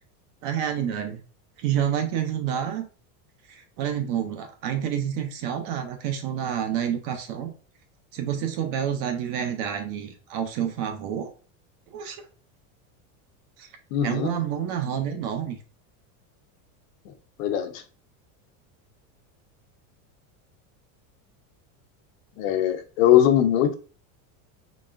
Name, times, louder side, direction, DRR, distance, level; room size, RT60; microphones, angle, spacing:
voice 1, 0.4-1.2 1.6-2.9 3.5-7.5 8.1-11.3 11.9-12.2 13.6-13.7 14.0-15.6, right 9 dB, 40° right, 0.5 m, -28 dB
voice 2, 13.9-14.3 17.1-17.2 17.4-17.8 22.4-23.8, left 11 dB, 75° left, 0.8 m, -21 dB
4.1 x 3.2 x 2.4 m
cardioid pair, 170°, 41 cm